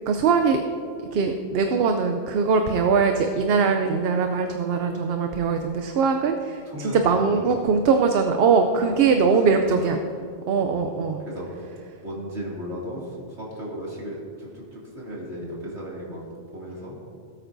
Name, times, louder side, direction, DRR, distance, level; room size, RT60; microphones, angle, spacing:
voice 1, 0.1-0.6 1.1-10.0 10.5-11.2, right 5 dB, 65° right, 6 dB, 0.8 m, -21 dB
voice 2, 6.7-7.4 8.7-9.1 9.5-9.6 10.5-11.5 12.0-16.2 16.5-16.9, equal, 85° right, -5 dB, 2.8 m, -36 dB
18.0 x 8.7 x 2.6 m, 2.3 s
omnidirectional pair, 1.1 m